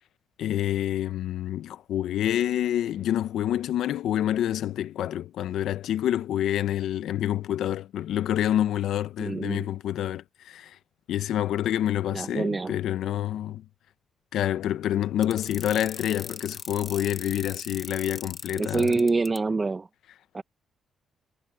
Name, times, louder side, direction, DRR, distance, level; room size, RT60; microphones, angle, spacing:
voice 1, 0.4-10.8 11.1-13.6 14.3-19.0, left 11 dB, 75° left, 0.8 m, -27 dB
voice 2, 9.2-9.7 12.1-12.7 18.6-19.9 20.3-20.4, right 3 dB, 25° right, 1.2 m, -26 dB
sound 1, 15.2-19.4, left 3 dB, 30° left, 1.3 m, -39 dB
cardioid pair, 90°, 0 cm